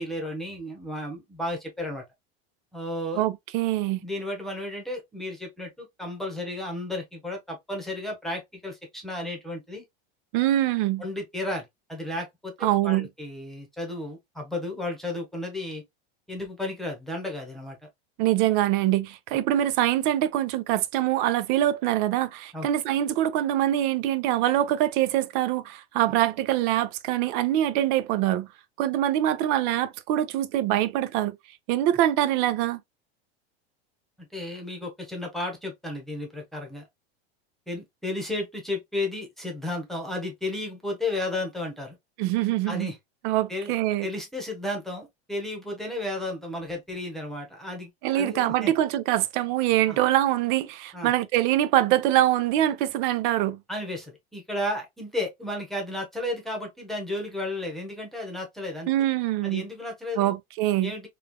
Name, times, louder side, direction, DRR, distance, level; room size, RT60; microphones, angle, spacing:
voice 1, 0.0-2.0 2.7-3.2 4.0-9.8 11.0-15.8 16.3-17.8 22.5-22.7 34.2-36.8 37.7-42.0 42.7-43.0 43.5-43.7 44.0-48.7 49.9-50.0 50.9-51.1 53.7-58.9 59.4-60.3 60.8-61.1, left 1 dB, ahead, 1.1 m, -33 dB
voice 2, 3.2-4.0 10.3-11.0 12.6-13.1 18.2-28.5 28.8-31.4 31.7-32.8 42.2-42.9 43.2-44.1 48.0-53.6 58.9-59.6 60.2-60.9, right 13 dB, 60° right, 0.5 m, -24 dB
3.2 x 2.5 x 2.2 m
supercardioid pair, 120°, 30 cm